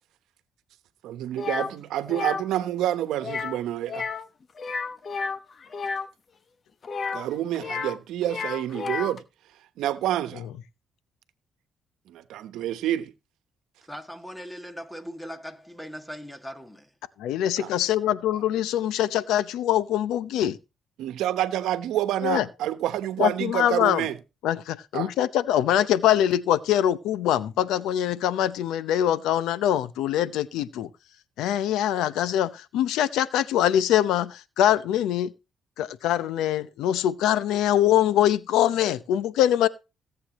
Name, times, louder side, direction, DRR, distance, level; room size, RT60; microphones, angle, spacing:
voice 1, 1.0-4.1 7.1-9.2 9.8-10.5 12.1-13.1 17.6-17.7 21.0-24.2 24.9-25.1, right 12 dB, 85° right, 1.1 m, -28 dB
sound 1, 1.4-1.7 2.1-2.4 3.2-3.6 3.9-4.3 4.6-6.1 6.8-8.0 8.2-9.2, left 5 dB, 45° left, 1.1 m, -31 dB
voice 2, 13.8-16.9, equal, 5° left, 1.9 m, -39 dB
voice 3, 17.2-20.6 22.2-22.5 23.2-24.1 24.4-30.9 31.4-35.3 35.8-39.7, left 11 dB, 90° left, 0.7 m, -23 dB
17.5 x 8.0 x 3.0 m
cardioid pair, 90°, 0 cm